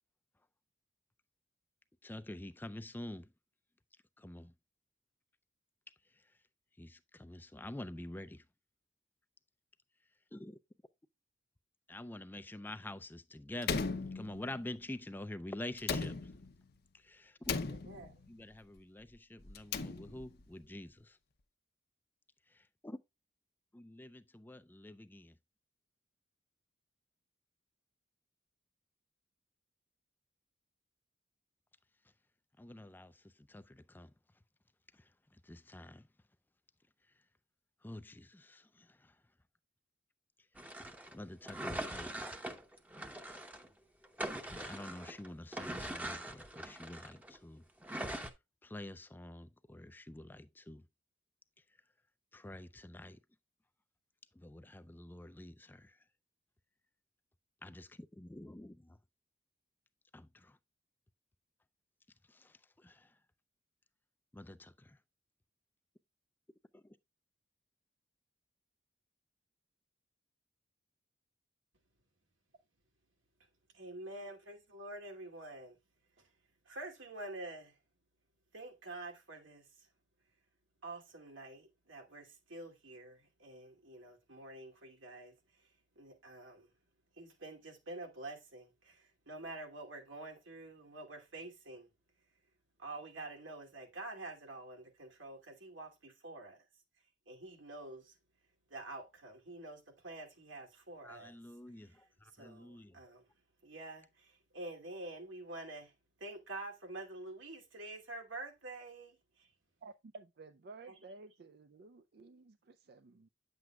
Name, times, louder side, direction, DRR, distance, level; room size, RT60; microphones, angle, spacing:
voice 1, 2.0-3.3 4.2-4.5 6.8-8.4 10.3-10.6 11.9-13.8 14.1-16.2 17.0-17.5 18.3-21.2 22.5-23.0 23.7-25.3 32.6-33.2 33.5-34.1 35.4-36.1 37.8-39.1 41.1-42.1 44.5-47.6 48.6-50.8 52.3-53.2 54.4-56.0 57.6-59.0 60.1-60.6 62.3-63.1 64.3-65.0 66.7-66.8 101.0-103.0, left 1 dB, 10° left, 0.3 m, -47 dB
Slam, 13.6-14.8 15.8-16.7 17.4-18.3 19.5-20.4, left 4 dB, 55° left, 0.7 m, -38 dB
voice 2, 17.7-18.2 73.7-75.8 76.2-76.4 76.6-77.8 78.5-79.9 80.8-86.7 87.1-91.9 92.8-96.7 97.3-98.2 98.7-103.3 103.6-109.5 110.8-111.0, right 2 dB, 90° right, 2.4 m, -48 dB
sound 1, 40.6-43.7 44.0-47.4 47.8-48.3, right 1 dB, 10° right, 0.8 m, -42 dB
voice 3, 109.8-113.3, right 3 dB, 55° right, 0.4 m, -54 dB
9.3 x 7.6 x 2.3 m
head